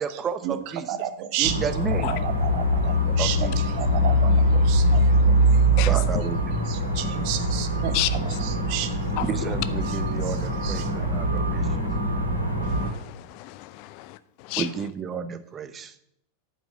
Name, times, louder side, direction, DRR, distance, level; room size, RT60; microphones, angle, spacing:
voice 1, 0.0-1.0 1.4-2.1 3.2-3.6 5.9-6.6 6.9-7.0 9.3-11.7 14.6-15.9, right 6 dB, 25° right, 12 dB, 0.9 m, -32 dB
voice 2, 0.9-1.5 2.1-3.4 3.8-5.1 6.7-9.2 9.9-10.0 10.6-10.9, right 11 dB, 45° right, 10 dB, 1.1 m, -32 dB
sound 1, 1.4-12.9, equal, 85° right, 3.8 m, -23 dB
voice 3, 12.6-14.2 14.4-14.7, left 18 dB, 45° left, 16 dB, 0.5 m, -31 dB
8.8 x 6.2 x 7.9 m, 0.74 s
figure-of-eight pair, 90°, 0 cm